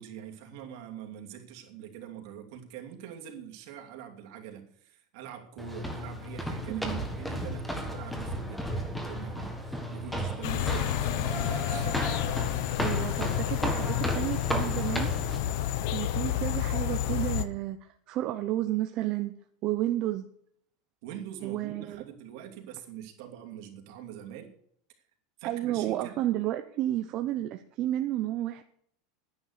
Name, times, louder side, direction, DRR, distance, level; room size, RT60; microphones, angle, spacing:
voice 1, 0.0-11.9 21.0-24.5 24.9-25.0 25.4-26.3, right 9 dB, 55° right, 3 dB, 2.7 m, -44 dB
sound 1, 5.6-15.4, equal, 5° left, 1.5 m, -34 dB
voice 2, 6.7-7.0 12.8-15.1 15.9-19.4 19.6-20.3 21.4-22.0 25.4-28.6, right 14 dB, 30° right, 7 dB, 0.7 m, -31 dB
sound 2, 10.4-17.4, left 12 dB, 55° left, 1.0 m, -30 dB
11.5 x 10.0 x 6.7 m, 0.66 s
supercardioid pair, 175°, 2 cm